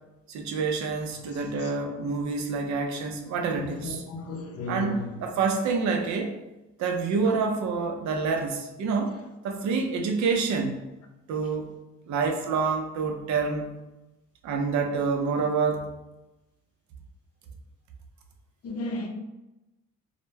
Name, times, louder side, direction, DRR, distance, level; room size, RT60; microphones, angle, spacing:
voice 1, 0.3-4.0 4.7-6.3 6.8-10.8 11.3-11.7 12.1-13.7 14.4-15.9, right 4 dB, 65° right, 4 dB, 0.5 m, -27 dB
voice 2, 3.5-5.2 18.6-19.1, left 2 dB, 50° left, 3 dB, 0.5 m, -34 dB
2.1 x 2.1 x 3.2 m, 0.98 s
cardioid pair, 90°, 30 cm